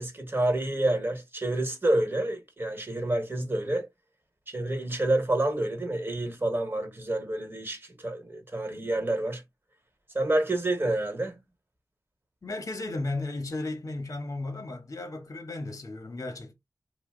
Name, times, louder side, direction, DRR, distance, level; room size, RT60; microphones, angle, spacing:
voice 1, 0.0-3.9 4.5-9.4 10.1-11.4, right 1 dB, 30° right, 1.2 m, -28 dB
voice 2, 12.4-16.5, left 2 dB, 50° left, 0.8 m, -34 dB
2.7 x 2.0 x 3.5 m
cardioid pair, 45°, 7 cm